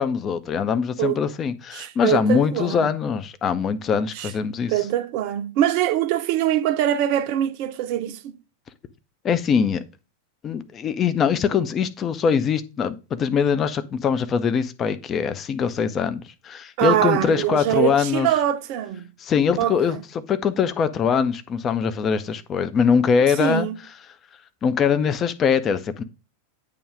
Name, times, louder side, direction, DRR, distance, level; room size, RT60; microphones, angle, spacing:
voice 1, 0.0-4.7 9.2-9.8 10.4-18.3 19.2-20.0 20.3-23.7 24.6-26.0, left 6 dB, 25° left, 0.6 m, -22 dB
voice 2, 1.7-2.9 4.1-4.3 4.7-8.4 16.8-19.1 19.6-20.0 23.4-23.8, right 12 dB, 45° right, 0.6 m, -23 dB
8.5 x 3.1 x 4.7 m
figure-of-eight pair, 90°, 0 cm